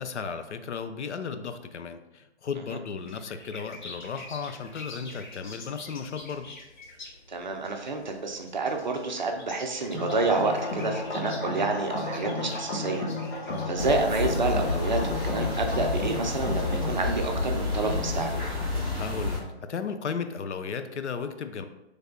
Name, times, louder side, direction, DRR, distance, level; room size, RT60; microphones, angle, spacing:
voice 1, 0.0-6.5 13.4-13.8 19.0-21.7, left 6 dB, 85° left, 9 dB, 0.5 m, -35 dB
sound 1, 3.0-16.9, left 2 dB, 45° left, 0.6 m, -48 dB
voice 2, 7.3-13.1 13.7-18.4, right 3 dB, 45° right, 3 dB, 0.4 m, -29 dB
sound 2, 9.9-17.0, left 2 dB, 70° left, 1.0 m, -33 dB
sound 3, 13.7-19.4, left 3 dB, ahead, 0.6 m, -29 dB
3.3 x 2.2 x 3.7 m, 0.94 s
figure-of-eight pair, 155°, 34 cm